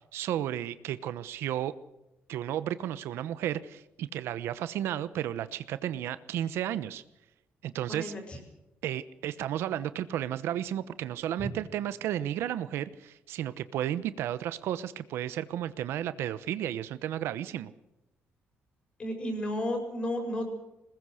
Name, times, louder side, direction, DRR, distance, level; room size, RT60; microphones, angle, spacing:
voice 1, 0.1-1.7 2.3-7.0 7.6-8.1 8.8-17.7, right 11 dB, 85° right, 15 dB, 0.9 m, -33 dB
voice 2, 7.8-8.2 19.0-20.5, left 1 dB, 25° left, 4 dB, 5.7 m, -32 dB
22.5 x 20.0 x 6.5 m, 0.95 s
cardioid pair, 160°, 4 cm